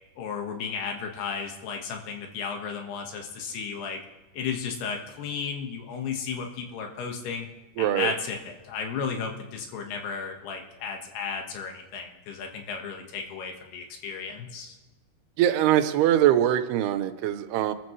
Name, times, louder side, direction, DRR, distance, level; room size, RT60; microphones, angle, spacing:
voice 1, 0.2-4.0 4.3-7.5 7.8-14.8, left 6 dB, 85° left, 3 dB, 3.6 m, -34 dB
voice 2, 7.8-8.1 15.4-17.7, right 11 dB, 85° right, 10 dB, 2.8 m, -22 dB
25.5 x 14.0 x 3.2 m, 1.2 s
omnidirectional pair, 4.5 m